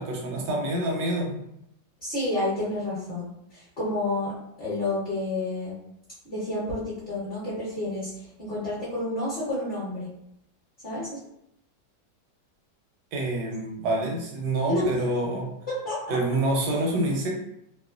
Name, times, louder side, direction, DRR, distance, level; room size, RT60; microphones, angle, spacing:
voice 1, 0.0-1.4 13.1-15.5 16.1-17.3, right 1 dB, 70° right, 0 dB, 1.0 m, -27 dB
voice 2, 2.0-4.3 4.6-5.7 6.2-10.1 10.8-11.2 14.7-14.9 15.7-16.2, left 1 dB, 40° left, -9 dB, 1.0 m, -30 dB
2.9 x 2.1 x 2.4 m, 0.79 s
omnidirectional pair, 2.0 m